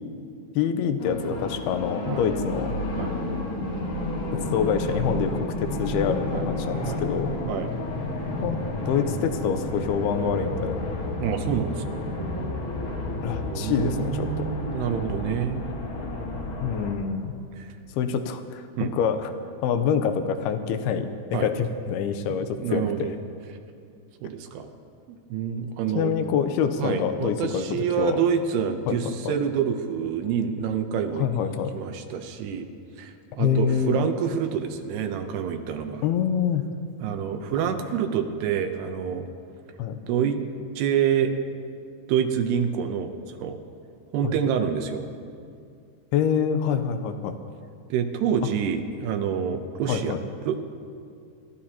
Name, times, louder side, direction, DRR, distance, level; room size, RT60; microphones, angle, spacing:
voice 1, 0.6-2.8 4.5-7.4 8.4-10.8 13.2-14.5 16.6-17.3 17.9-19.3 19.6-23.1 26.0-28.2 28.9-29.4 31.2-31.7 33.4-34.1 36.0-36.7 39.8-40.0 44.2-44.4 46.1-47.4 49.9-50.2, left 7 dB, 85° left, 8 dB, 2.6 m, -26 dB
sound 1, 1.0-17.0, left 1 dB, 55° left, 1.5 m, -31 dB
voice 2, 11.2-12.0 13.4-15.7 17.6-17.7 18.8-18.9 21.3-21.5 22.3-23.1 24.2-24.7 25.1-26.1 26.8-31.3 31.7-32.7 33.0-36.0 37.0-39.3 40.1-40.4 40.8-41.3 42.1-43.6 44.1-45.1 47.9-50.2 50.5-50.6, right 8 dB, 85° right, 6 dB, 2.9 m, -27 dB
29.0 x 13.0 x 2.9 m, 2.4 s
omnidirectional pair, 4.6 m